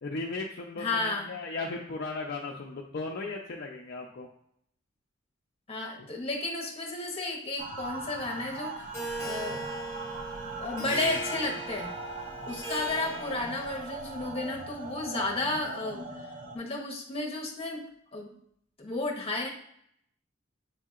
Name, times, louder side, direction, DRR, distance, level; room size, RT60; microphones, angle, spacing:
voice 1, 0.0-4.3 6.0-6.1, left 3 dB, 55° left, 0 dB, 0.5 m, -36 dB
voice 2, 0.8-1.3 5.7-8.9 9.2-9.6 10.4-11.9 12.5-16.1 16.5-18.3 18.8-19.5, left 2 dB, 30° left, 0 dB, 1.0 m, -33 dB
sound 1, 7.6-16.6, right 3 dB, 45° right, 0.6 m, -40 dB
Harp, 8.9-13.9, right 1 dB, 15° left, 1.3 m, -38 dB
7.6 x 2.7 x 2.4 m, 0.68 s
head